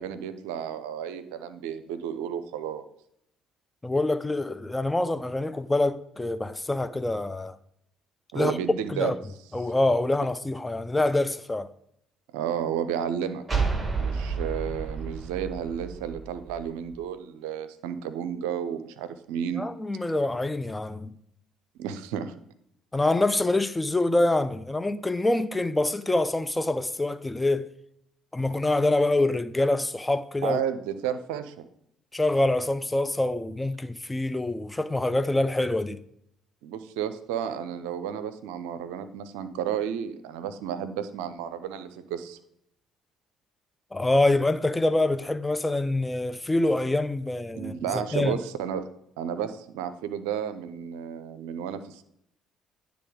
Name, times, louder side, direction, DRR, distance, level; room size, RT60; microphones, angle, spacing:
voice 1, 0.0-2.8 8.3-9.1 12.3-13.4 14.0-19.7 21.8-22.3 30.4-31.6 36.6-42.4 47.5-48.9 49.2-52.0, right 8 dB, 75° right, 0.5 m, -32 dB
voice 2, 3.8-7.6 8.3-8.6 8.9-9.1 9.5-11.7 19.5-21.2 22.9-27.7 28.3-30.6 32.1-36.0 43.9-48.4, left 2 dB, 15° left, 0.4 m, -25 dB
sound 1, 13.5-17.0, right 4 dB, 20° right, 1.6 m, -31 dB
9.9 x 3.4 x 5.0 m
hypercardioid pair, 50°, 0 cm